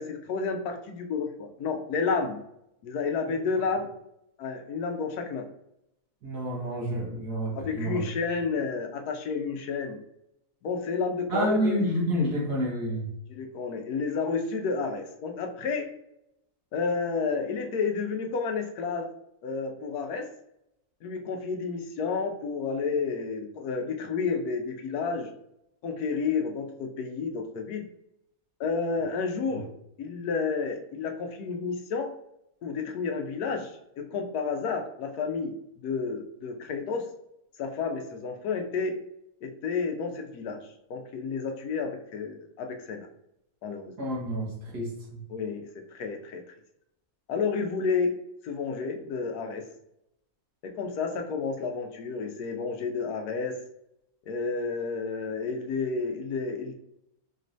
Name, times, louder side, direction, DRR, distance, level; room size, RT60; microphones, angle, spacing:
voice 1, 0.0-2.4 2.8-3.9 4.4-5.4 7.5-10.0 10.6-11.8 13.3-15.9 16.7-19.1 19.4-20.3 21.0-25.3 25.8-27.8 28.6-29.7 30.0-32.1 32.6-35.5 35.8-37.0 37.6-39.0 39.4-40.6 40.9-43.1 43.6-43.9 45.3-46.4 47.3-48.1 48.4-49.6 50.6-53.6 54.3-56.7, left 5 dB, 80° left, 4 dB, 1.1 m, -31 dB
voice 2, 6.2-8.0 11.3-13.1 44.0-45.2, equal, 80° right, -3 dB, 1.8 m, -29 dB
4.4 x 3.1 x 2.6 m, 0.81 s
omnidirectional pair, 1.7 m